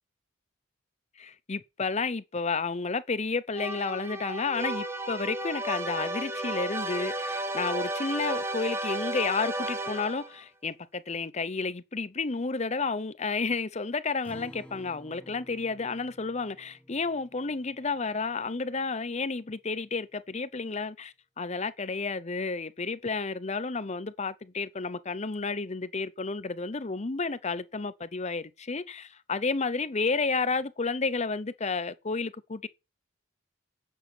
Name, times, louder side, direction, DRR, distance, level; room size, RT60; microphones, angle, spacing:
voice 1, 1.2-32.7, left 4 dB, 35° left, 0.7 m, -31 dB
sound 1, 3.5-10.4, right 1 dB, 10° right, 1.2 m, -33 dB
Acoustic guitar, 14.2-18.9, equal, 5° left, 1.5 m, -52 dB
10.5 x 7.6 x 6.2 m
head